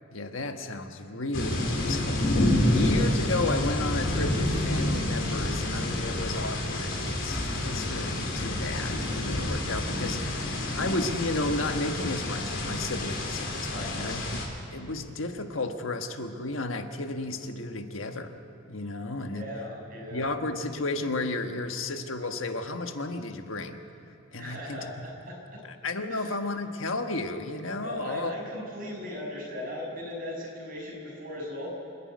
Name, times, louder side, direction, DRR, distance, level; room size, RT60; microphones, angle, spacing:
voice 1, 0.1-14.4 14.7-18.3 18.7-19.5 20.1-23.8 24.3-24.9 25.8-28.3, left 2 dB, 90° left, 6 dB, 1.4 m, -33 dB
sound 1, 1.3-14.4, left 1 dB, 70° left, 3.6 m, -28 dB
voice 2, 13.7-14.1 19.0-20.2 24.4-25.6 26.1-26.3 27.7-31.7, left 1 dB, 45° right, -2 dB, 6.9 m, -38 dB
28.0 x 11.0 x 9.6 m, 2.9 s
head